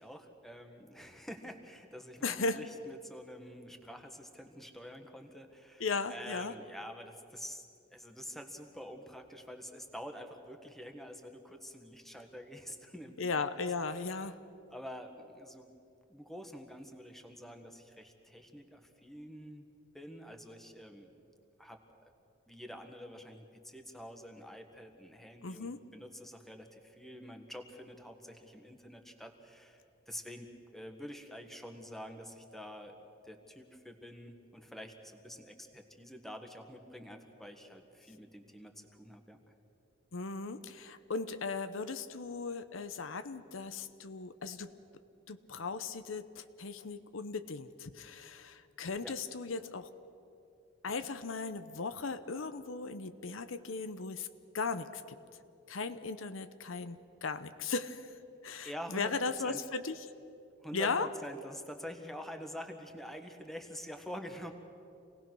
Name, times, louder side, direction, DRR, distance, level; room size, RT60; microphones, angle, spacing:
voice 1, 0.0-7.6 7.9-13.7 13.9-14.3 14.7-15.7 16.1-19.6 19.9-21.1 21.6-22.1 22.5-29.8 30.1-33.0 33.2-39.4 49.0-49.1 58.6-59.1 59.4-59.6 60.6-64.5, equal, ahead, 4 dB, 1.6 m, -47 dB
voice 2, 2.2-2.6 5.8-6.5 13.2-14.4 25.4-25.8 40.1-44.7 45.3-49.9 50.8-54.3 54.5-55.2 55.7-58.1 58.4-59.9 60.7-61.1, left 4 dB, 80° left, 11 dB, 0.8 m, -37 dB
27.5 x 18.5 x 6.2 m, 2.7 s
head